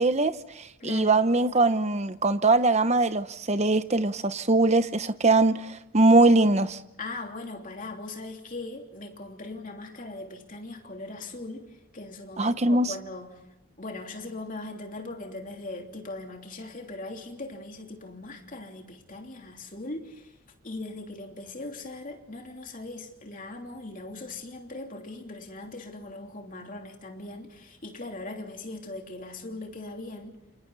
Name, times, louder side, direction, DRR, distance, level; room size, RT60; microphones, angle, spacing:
voice 1, 0.0-6.8 12.4-12.9, right 2 dB, 30° right, 0.9 m, -22 dB
voice 2, 0.8-1.2 7.0-13.3 13.8-20.4 20.6-30.4, left 2 dB, 35° left, 3.1 m, -40 dB
29.5 x 28.0 x 4.1 m
head